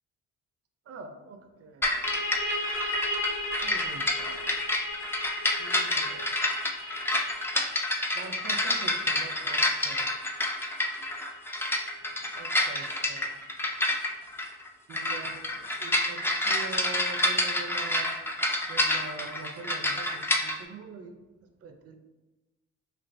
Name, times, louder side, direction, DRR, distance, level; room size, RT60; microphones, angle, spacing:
voice 1, 0.9-2.0 3.6-4.6 5.6-6.5 8.1-10.1 12.3-13.3 14.9-18.1 18.7-21.2 21.4-22.0, right 4 dB, 50° right, 6 dB, 0.6 m, -44 dB
sound 1, 1.8-20.6, left 1 dB, 10° left, 0.3 m, -28 dB
sound 2, 2.0-13.4, left 1 dB, 75° left, 1.5 m, -37 dB
4.5 x 2.8 x 2.6 m, 1.1 s
cardioid pair, 90°, 30 cm